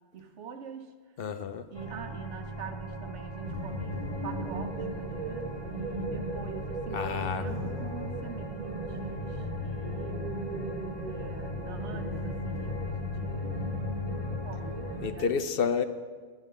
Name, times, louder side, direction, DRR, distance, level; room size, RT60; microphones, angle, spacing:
voice 1, 0.1-0.9 1.7-10.4 11.1-13.5 14.4-15.6, right 6 dB, 90° right, 7 dB, 1.2 m, -44 dB
voice 2, 1.2-1.7 6.9-7.5 15.0-15.8, left 6 dB, 60° left, 10 dB, 0.8 m, -29 dB
sound 1, 1.7-15.1, right 2 dB, 25° left, 0.9 m, -40 dB
sound 2, 3.4-15.1, left 1 dB, 40° right, 1.4 m, -36 dB
11.5 x 9.9 x 5.6 m, 1.5 s
omnidirectional pair, 1.2 m